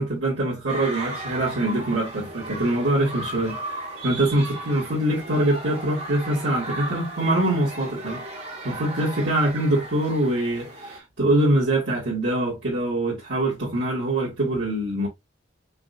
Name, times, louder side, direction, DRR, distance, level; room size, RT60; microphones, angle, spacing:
voice 1, 0.0-3.6 4.0-8.2 8.6-15.1, right 1 dB, 80° right, 2.4 m, -24 dB
sound 1, 0.7-11.0, right 1 dB, 35° right, 1.6 m, -36 dB
5.7 x 2.8 x 2.5 m
head